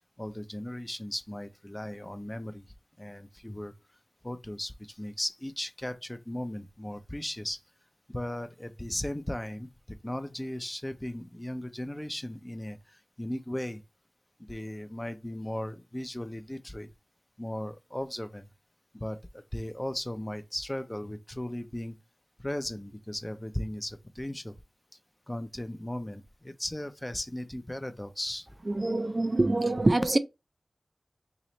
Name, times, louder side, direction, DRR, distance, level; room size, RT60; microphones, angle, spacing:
voice 1, 0.2-2.7 3.0-3.7 4.2-7.6 8.1-13.8 14.4-16.9 17.4-18.5 19.0-21.9 22.4-24.6 25.3-28.5, left 1 dB, 20° left, 0.5 m, -37 dB
voice 2, 28.8-30.2, right 2 dB, 45° right, 0.3 m, -25 dB
3.1 x 3.0 x 4.0 m
wide cardioid pair, 55°, 0 cm